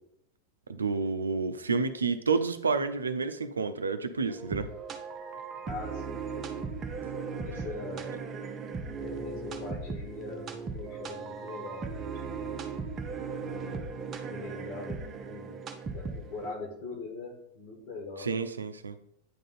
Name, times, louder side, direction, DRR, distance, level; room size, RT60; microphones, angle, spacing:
voice 1, 0.7-4.7 18.2-19.0, right 4 dB, 75° right, 10 dB, 0.5 m, -29 dB
sound 1, 4.3-16.5, right 4 dB, 25° right, 0.7 m, -37 dB
voice 2, 5.6-8.1 9.0-12.5 13.3-13.9 14.3-15.6 15.9-18.3, left 3 dB, 45° left, 2 dB, 1.9 m, -42 dB
9.3 x 3.8 x 4.1 m, 0.74 s
figure-of-eight pair, 90°, 0 cm